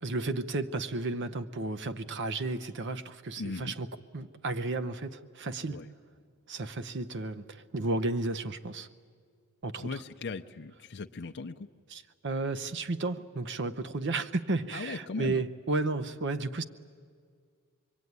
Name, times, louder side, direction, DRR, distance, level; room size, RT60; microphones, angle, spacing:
voice 1, 0.0-3.9 4.1-5.8 6.5-8.9 9.6-10.0 11.9-16.6, right 3 dB, 55° right, 12 dB, 0.8 m, -33 dB
voice 2, 3.4-3.7 5.7-5.9 9.8-11.7 14.7-15.4, left 3 dB, 50° left, 5 dB, 0.6 m, -38 dB
25.0 x 23.5 x 9.5 m, 2.1 s
head